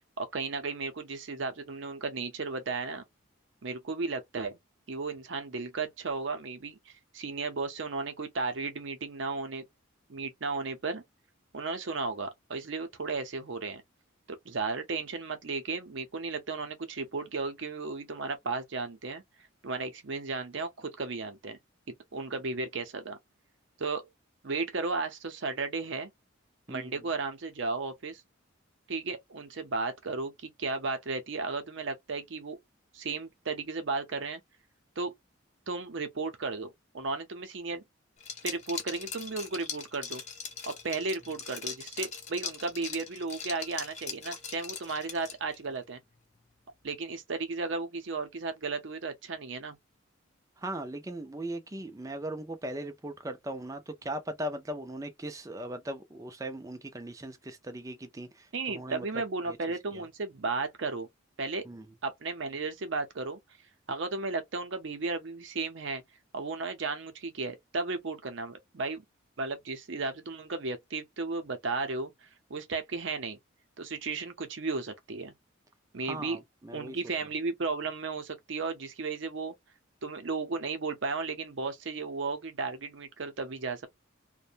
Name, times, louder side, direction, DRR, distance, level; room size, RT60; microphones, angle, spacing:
voice 1, 0.2-3.0 3.6-4.6 4.9-9.6 10.1-11.0 11.5-13.8 14.3-19.2 19.6-21.6 22.1-23.2 23.8-24.1 24.4-26.1 26.7-28.2 28.9-32.6 32.9-34.4 35.0-35.1 35.7-37.8 38.4-40.2 40.7-46.0 46.8-49.8 58.5-61.1 61.4-61.6 62.0-63.4 63.9-66.0 66.3-69.0 69.4-72.1 72.5-73.4 73.8-75.3 75.9-76.4 76.7-79.5 80.0-83.9, right 3 dB, 65° right, 0.6 m, -34 dB
Liquid, 38.2-45.6, left 6 dB, 35° left, 0.7 m, -40 dB
voice 2, 50.6-59.6 59.9-60.0 61.7-61.9 76.0-77.0, right 1 dB, 15° right, 0.4 m, -39 dB
2.5 x 2.2 x 2.7 m
head